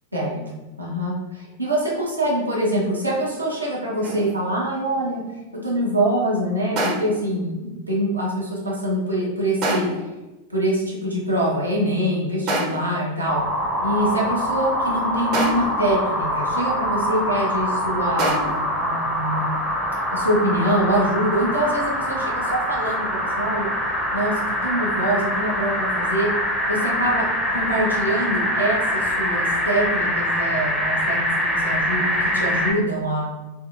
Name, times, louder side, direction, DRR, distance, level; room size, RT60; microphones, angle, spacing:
voice 1, 0.8-5.2 5.6-9.9 10.5-13.4 13.8-19.5 20.1-23.7 24.1-24.3 24.6-26.3 26.7-27.3 27.5-33.3, right 1 dB, 80° right, -4 dB, 0.7 m, -24 dB
sound 1, 4.0-4.5 6.8-7.3 9.6-10.1 12.5-13.0 15.3-15.9 18.2-18.8, right 1 dB, 40° right, 0.6 m, -26 dB
sound 2, 13.3-32.7, equal, 5° left, 0.4 m, -24 dB
2.5 x 2.4 x 2.6 m, 1.0 s
figure-of-eight pair, 90°, 0 cm